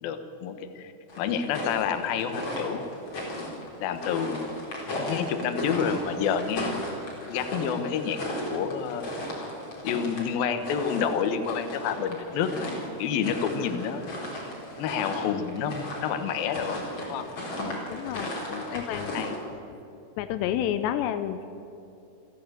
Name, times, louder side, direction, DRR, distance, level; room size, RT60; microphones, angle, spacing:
voice 1, 0.0-2.8 3.8-4.6 4.9-6.8 7.3-8.2 8.5-9.1 9.8-12.7 13.0-14.1 14.8-16.8 17.1-17.3 18.5-19.3, left 7 dB, 65° left, 8 dB, 2.8 m, -29 dB
sound 1, 1.1-19.4, left 1 dB, 30° left, 4.1 m, -35 dB
voice 2, 17.6-18.3 18.7-19.2 20.2-21.4, left 11 dB, 85° left, 11 dB, 2.9 m, -30 dB
28.5 x 11.5 x 8.1 m, 2.8 s
omnidirectional pair, 5.0 m